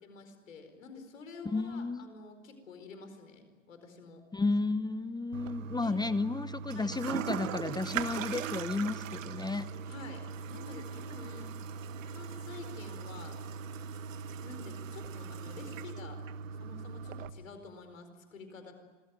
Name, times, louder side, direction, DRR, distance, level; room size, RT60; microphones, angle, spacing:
voice 1, 0.0-4.2 5.8-6.0 6.7-6.9 9.9-11.6 12.0-13.6 14.4-16.2 16.5-18.7, left 4 dB, 85° left, 7 dB, 4.6 m, -49 dB
voice 2, 1.5-2.0 4.3-9.7, left 3 dB, 10° left, 13 dB, 0.9 m, -32 dB
Toilet flush, 5.3-17.3, right 6 dB, 80° right, 1.4 m, -40 dB
26.0 x 20.5 x 9.3 m, 1.5 s
hypercardioid pair, 90°, 38 cm